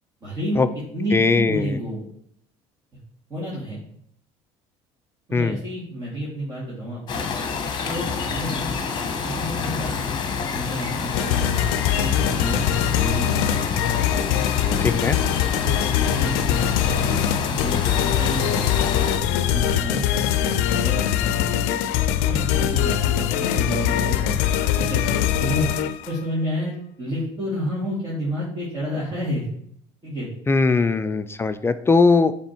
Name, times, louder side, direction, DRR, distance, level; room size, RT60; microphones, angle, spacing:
voice 1, 0.2-0.7 0.9-2.0 3.3-3.8 5.3-7.2 7.8-10.0 10.5-11.6 12.0-13.4 14.7-14.8 15.6-17.1 17.5-18.5 19.1-20.0 20.3-21.5 22.2-24.4 24.8-25.0 25.4-25.7 26.1-29.5 30.0-30.3 31.0-31.1, equal, 30° right, -8 dB, 2.6 m, -30 dB
voice 2, 1.1-1.8 5.3-5.6 14.8-15.2 30.5-32.3, left 4 dB, 20° left, 11 dB, 0.4 m, -20 dB
sound 1, 7.1-19.2, left 5 dB, 35° left, 1.1 m, -28 dB
sound 2, 11.1-26.2, left 10 dB, 85° left, 0.5 m, -22 dB
7.2 x 3.5 x 4.4 m, 0.67 s
supercardioid pair, 95°, 13 cm